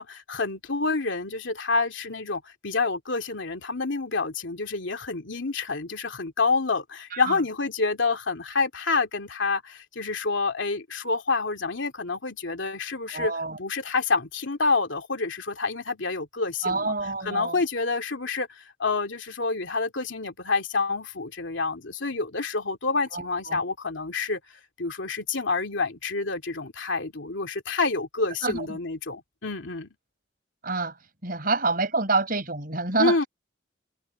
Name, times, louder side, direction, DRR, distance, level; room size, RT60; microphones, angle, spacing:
voice 1, 0.0-13.3 13.6-16.9 17.2-29.9 33.0-33.2, left 3 dB, 70° left, 2.6 m, -28 dB
voice 2, 13.1-13.6 16.6-17.6 23.1-23.6 28.4-28.7 30.6-30.9 31.2-33.2, right 3 dB, 45° right, 5.9 m, -27 dB
head